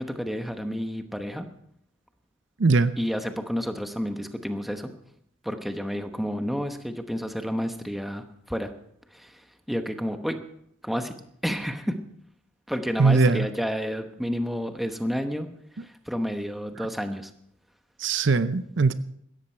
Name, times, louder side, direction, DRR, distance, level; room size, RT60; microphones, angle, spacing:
voice 1, 0.0-1.5 3.0-4.9 5.4-8.7 9.1-10.4 10.8-11.1 11.4-11.9 12.7-15.5 15.8-17.3, equal, ahead, 6 dB, 1.0 m, -30 dB
voice 2, 2.6-2.9 13.0-13.5 18.0-18.9, right 4 dB, 60° right, 13 dB, 0.6 m, -20 dB
16.5 x 14.0 x 4.5 m, 0.71 s
head